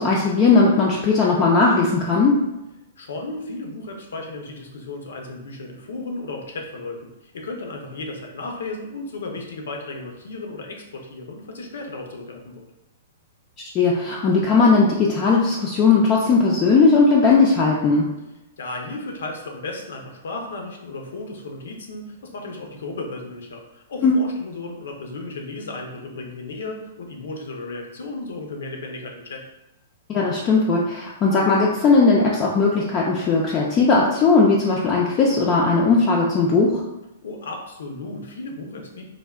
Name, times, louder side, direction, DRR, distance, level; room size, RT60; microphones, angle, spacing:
voice 1, 0.0-2.4 13.7-18.1 24.0-24.2 30.1-36.8, left 4 dB, 25° left, -3 dB, 0.3 m, -18 dB
voice 2, 3.0-12.7 18.6-29.5 37.2-39.1, left 2 dB, 80° left, 2 dB, 0.6 m, -34 dB
3.4 x 2.0 x 2.3 m, 0.94 s
hypercardioid pair, 150°, 0 cm